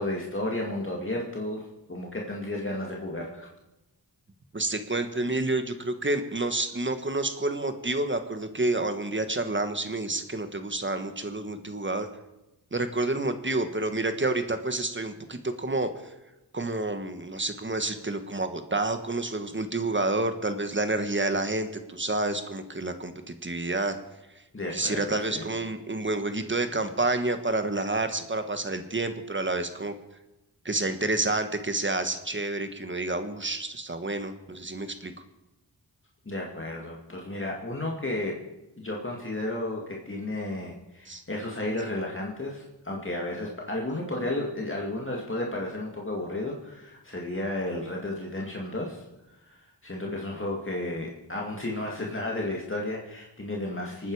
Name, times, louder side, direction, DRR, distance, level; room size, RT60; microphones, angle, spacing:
voice 1, 0.0-1.6 1.9-3.5 24.5-25.5 36.3-38.3 38.8-49.0 49.5-54.1, left 1 dB, 30° left, -2 dB, 2.3 m, -33 dB
voice 2, 4.5-12.1 12.7-15.9 16.5-24.0 24.7-29.9 30.6-35.1 41.1-41.2 50.0-50.1, right 2 dB, 25° right, 8 dB, 1.4 m, -29 dB
26.0 x 9.6 x 4.9 m, 0.97 s
wide cardioid pair, 80°, 42 cm